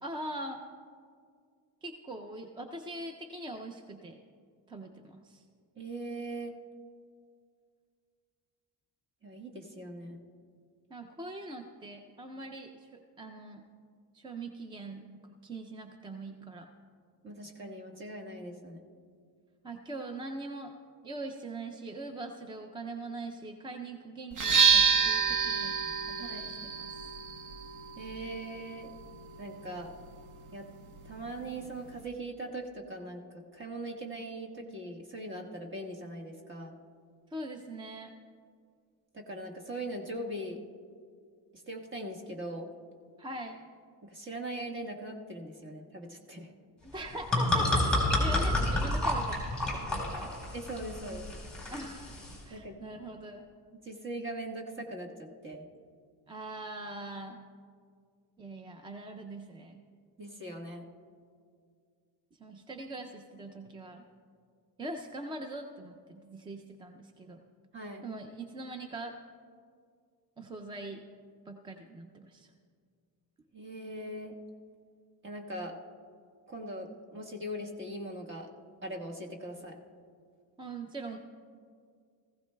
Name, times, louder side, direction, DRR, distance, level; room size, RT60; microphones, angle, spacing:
voice 1, 0.0-0.6 1.8-4.2 4.7-5.4 10.9-12.9 13.2-13.6 14.1-16.7 19.6-20.7 21.0-25.8 26.1-26.9 37.3-38.1 43.2-43.6 46.8-50.3 51.7-52.1 52.5-53.4 56.3-57.4 58.4-59.8 62.4-64.0 64.8-67.4 68.0-69.1 70.4-71.0 71.5-72.5 80.6-81.2, right 2 dB, 15° right, 4 dB, 0.3 m, -42 dB
voice 2, 5.8-6.5 9.2-10.2 17.2-18.8 26.2-26.5 28.0-28.9 29.4-29.9 30.5-30.7 31.0-33.2 33.5-36.8 39.1-40.6 41.5-42.7 44.0-46.5 50.5-51.3 52.5-52.8 53.7-55.1 55.4-55.6 60.2-60.9 67.7-68.1 73.5-74.4 75.2-75.7 76.5-78.5 78.8-79.7, right 1 dB, 30° right, 0 dB, 1.3 m, -40 dB
sound 1, 24.3-32.1, right 6 dB, 45° right, 0.8 m, -30 dB
sound 2, 46.9-52.4, left 1 dB, ahead, 3.9 m, -30 dB
19.0 x 15.5 x 2.2 m, 2.1 s
cardioid pair, 165°, 40 cm